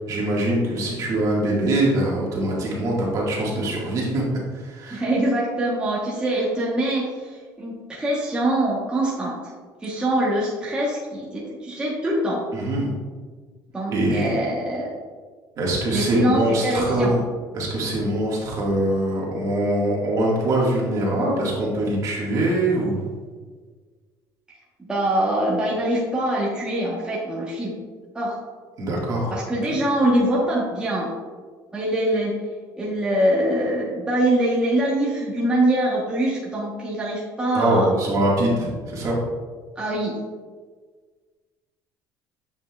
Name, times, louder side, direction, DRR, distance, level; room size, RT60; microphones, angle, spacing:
voice 1, 0.1-4.2 4.5-5.0 12.5-12.9 13.9-14.4 15.6-17.2 17.5-23.0 28.8-29.3 37.5-39.2, right 1 dB, 45° right, -4 dB, 1.7 m, -23 dB
voice 2, 4.9-9.4 9.8-12.4 13.7-14.9 15.9-17.2 24.9-27.8 28.1-28.4 29.3-31.1 31.7-32.4 32.8-37.9 39.8-40.2, right 1 dB, 10° right, -6 dB, 1.0 m, -23 dB
7.3 x 5.7 x 2.3 m, 1.5 s
cardioid pair, 140°, 8 cm